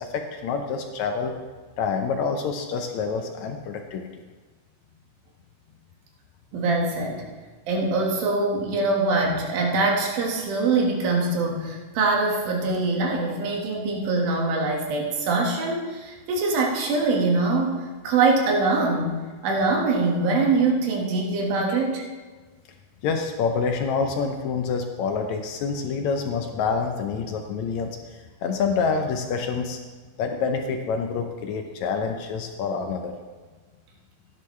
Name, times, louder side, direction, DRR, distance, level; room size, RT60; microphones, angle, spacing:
voice 1, 0.0-1.3 1.8-4.1 23.0-29.8 30.2-33.1, left 5 dB, 75° left, 4 dB, 1.7 m, -27 dB
voice 2, 6.5-7.2 7.7-22.0, right 3 dB, 80° right, 0 dB, 3.5 m, -23 dB
16.0 x 10.5 x 3.2 m, 1.4 s
omnidirectional pair, 4.1 m